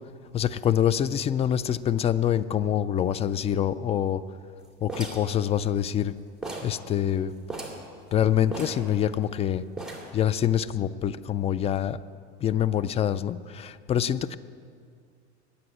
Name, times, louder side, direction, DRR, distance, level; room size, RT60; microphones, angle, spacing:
voice 1, 0.3-4.2 4.8-6.2 6.6-7.3 8.1-9.6 10.1-12.0 12.4-14.4, left 10 dB, 20° left, 16 dB, 0.3 m, -25 dB
sound 1, 4.9-6.1 6.4-6.8 7.1-7.2 7.5-7.9 8.5-9.4 9.8-10.2, right 2 dB, ahead, 2.5 m, -37 dB
9.7 x 8.5 x 9.8 m, 2.3 s
hypercardioid pair, 85°, 34 cm